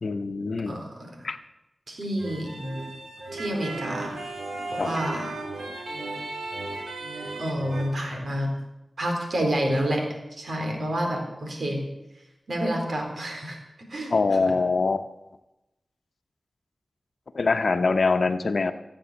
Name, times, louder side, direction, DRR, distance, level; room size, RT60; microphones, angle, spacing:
voice 1, 0.0-0.8 1.2-1.4 4.8-4.9 14.1-15.1 17.3-18.7, left 4 dB, 70° left, 9 dB, 0.9 m, -23 dB
voice 2, 0.7-1.2 1.9-2.5 3.3-4.2 4.7-5.3 7.4-8.5 9.0-10.0 10.3-11.8 12.5-13.6 13.9-14.5, equal, 70° right, 2 dB, 4.0 m, -29 dB
sound 1, 2.2-7.9, right 2 dB, 90° right, 2.4 m, -35 dB
15.0 x 8.9 x 8.5 m, 0.97 s
cardioid pair, 45°, 0 cm